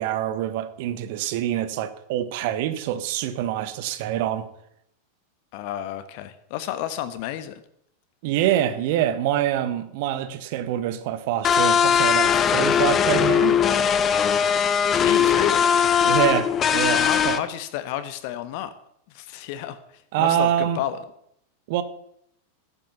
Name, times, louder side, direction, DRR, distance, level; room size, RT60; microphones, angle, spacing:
voice 1, 0.0-4.5 8.2-13.6 16.0-17.4 20.1-20.8 21.7-21.8, right 11 dB, 50° right, 1.5 m, -25 dB
voice 2, 5.5-7.6 14.9-15.7 16.9-18.7 19.1-21.0, left 12 dB, 45° left, 1.3 m, -31 dB
sound 1, 11.4-17.4, left 8 dB, 25° left, 1.1 m, -20 dB
14.0 x 11.5 x 7.2 m
figure-of-eight pair, 90°, 0 cm